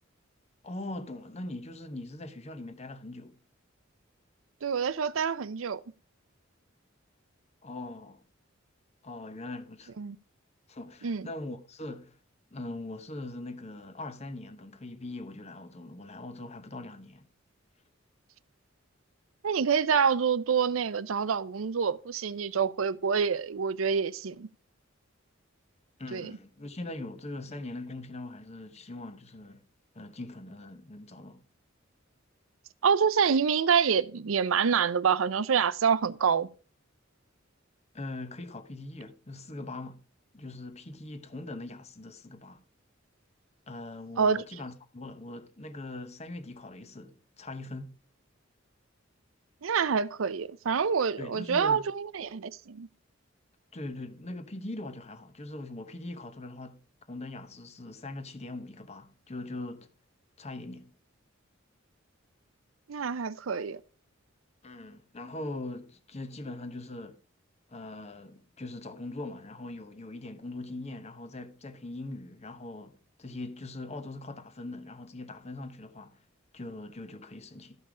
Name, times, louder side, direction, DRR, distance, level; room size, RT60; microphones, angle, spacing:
voice 1, 0.6-3.4 7.6-8.2 9.0-10.0 10.7-12.2 12.5-17.2 26.0-29.6 29.9-31.4 37.9-40.0 40.3-42.6 43.7-48.0 51.2-51.9 53.7-56.8 57.1-59.9 60.4-60.9 64.6-67.2 67.7-76.2 76.5-77.8, left 2 dB, 35° left, 0.9 m, -41 dB
voice 2, 4.6-5.8 10.0-10.2 11.0-11.3 19.4-24.5 26.1-26.3 32.8-36.5 44.2-44.4 49.6-52.9 62.9-63.8, right 6 dB, 85° right, 0.5 m, -27 dB
13.0 x 5.5 x 4.9 m
head